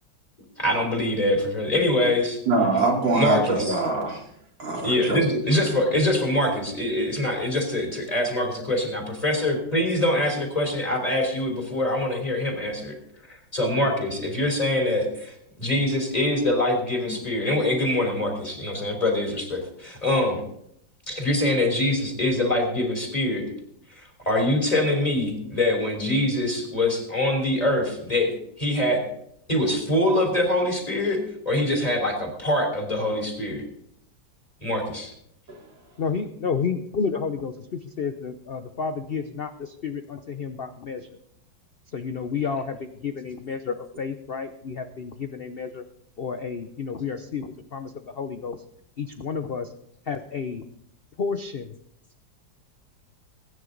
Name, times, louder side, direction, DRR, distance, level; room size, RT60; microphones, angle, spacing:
voice 1, 0.6-2.4 3.1-3.8 4.8-13.0 13.3-20.4 21.1-23.5 23.9-29.0 29.5-31.2 31.5-33.6 34.6-35.1, left 1 dB, 20° left, 2 dB, 3.4 m, -24 dB
voice 2, 2.5-4.2 4.6-5.2 35.5-35.6, right 2 dB, 85° right, -2 dB, 4.1 m, -23 dB
voice 3, 36.0-41.1 41.9-45.8 46.2-48.6 49.0-49.7 50.1-50.6 51.2-51.7, left 5 dB, 70° left, 8 dB, 0.5 m, -31 dB
20.5 x 9.7 x 3.9 m, 0.72 s
omnidirectional pair, 2.0 m